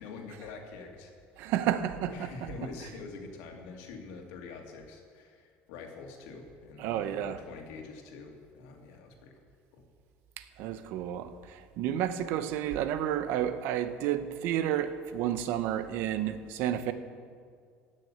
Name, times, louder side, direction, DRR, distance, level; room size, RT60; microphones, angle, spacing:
voice 1, 0.0-1.5 2.1-9.3 9.7-9.8, left 4 dB, 80° left, 2 dB, 2.2 m, -45 dB
voice 2, 1.4-2.3 6.8-7.4 10.4-16.9, right 11 dB, 55° right, 11 dB, 0.8 m, -31 dB
16.0 x 6.6 x 8.6 m, 2.1 s
cardioid pair, 180°, 4 cm